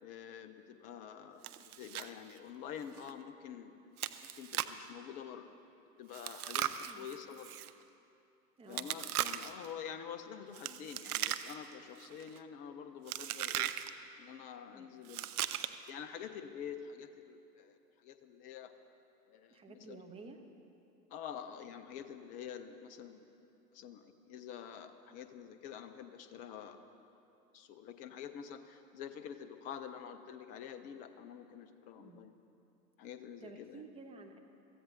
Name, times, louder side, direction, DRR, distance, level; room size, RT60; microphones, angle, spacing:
voice 1, 0.0-3.9 4.4-5.5 6.0-7.5 8.7-13.7 14.2-18.7 19.3-19.6 19.9-20.0 21.1-23.3 23.7-26.8 27.5-32.3 33.0-33.8, left 8 dB, 20° left, 9 dB, 0.5 m, -47 dB
Chewing mastication, 1.4-2.1 2.4-2.5 3.0-3.1 4.0-4.8 6.1-7.7 8.7-9.7 10.5-11.7 12.0-12.4 13.1-13.9 15.0-15.9, right 12 dB, 65° right, 0.7 m, -38 dB
voice 2, 19.5-20.4 32.0-32.2 33.4-34.4, right 3 dB, 10° right, 3 dB, 1.1 m, -52 dB
24.0 x 15.0 x 2.7 m, 2.7 s
figure-of-eight pair, 100°, 49 cm